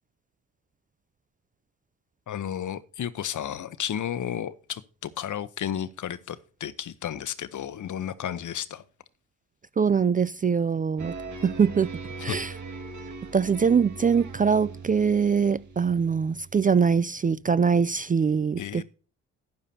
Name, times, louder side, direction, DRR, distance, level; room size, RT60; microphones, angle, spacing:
voice 1, 2.3-8.8 12.3-12.4 18.6-18.8, left 10 dB, 55° left, 0.9 m, -33 dB
voice 2, 9.8-11.1 11.4-11.9 12.2-12.5 13.3-18.8, right 6 dB, 25° right, 0.4 m, -23 dB
sound 1, 11.0-17.2, right 3 dB, 55° right, 2.0 m, -40 dB
12.0 x 10.0 x 2.8 m
supercardioid pair, 50°, 36 cm